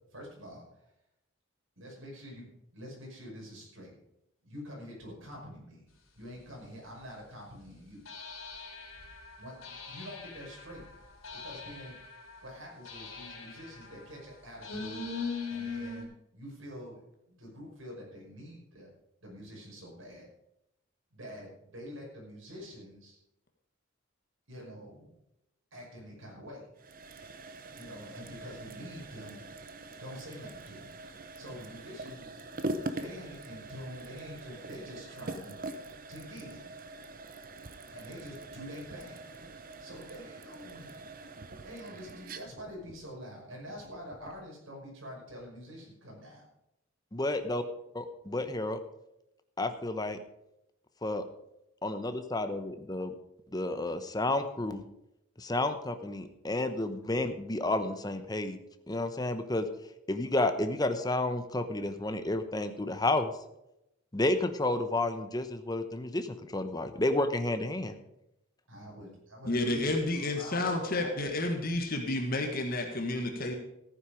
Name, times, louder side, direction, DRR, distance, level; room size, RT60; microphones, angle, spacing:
voice 1, 0.1-0.6 1.8-3.9 4.4-5.9 6.1-8.0 9.4-10.8 11.4-12.0 12.4-15.1 15.5-17.0 17.3-18.9 19.2-20.3 21.1-23.2 24.5-25.1 25.7-26.7 27.8-29.4 30.0-30.9 31.4-32.4 32.8-35.5 36.1-36.7 37.9-39.2 39.8-41.0 41.6-46.5 68.7-71.3, equal, 75° right, -2 dB, 5.7 m, -46 dB
sound 1, 6.5-6.6 8.1-16.0, left 4 dB, 85° left, 3.4 m, -41 dB
sound 2, 26.8-44.5, right 2 dB, 45° right, 1.0 m, -43 dB
voice 2, 47.1-47.6 47.9-48.8 49.6-50.2 51.0-51.2 51.8-53.1 53.5-54.8 55.4-58.6 58.9-59.7 60.1-63.3 64.1-67.9, left 2 dB, 20° left, 9 dB, 0.9 m, -31 dB
voice 3, 69.4-73.6, left 2 dB, 45° left, 3 dB, 1.6 m, -30 dB
14.5 x 9.6 x 5.1 m, 0.85 s
head